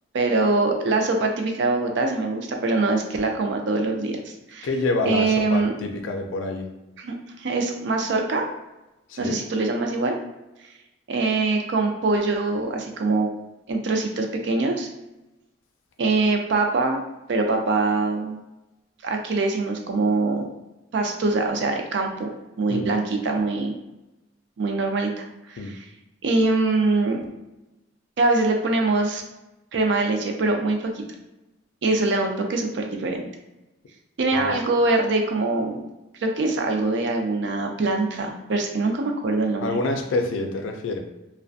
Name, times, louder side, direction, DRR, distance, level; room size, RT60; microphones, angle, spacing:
voice 1, 0.1-4.7 5.1-5.7 7.0-8.4 9.2-10.2 11.1-13.3 13.7-14.9 16.0-17.0 17.3-18.4 19.0-20.4 20.9-22.3 22.6-23.7 24.6-25.8 26.2-27.3 28.2-29.2 29.7-30.9 31.8-33.3 34.2-35.8 36.2-39.7, right 3 dB, 65° right, 3 dB, 0.4 m, -23 dB
voice 2, 4.6-6.7 9.1-9.4 22.7-22.9 25.6-25.7 34.3-34.5 39.6-41.0, left 2 dB, 80° left, 5 dB, 0.4 m, -27 dB
2.4 x 2.1 x 2.5 m, 0.98 s
head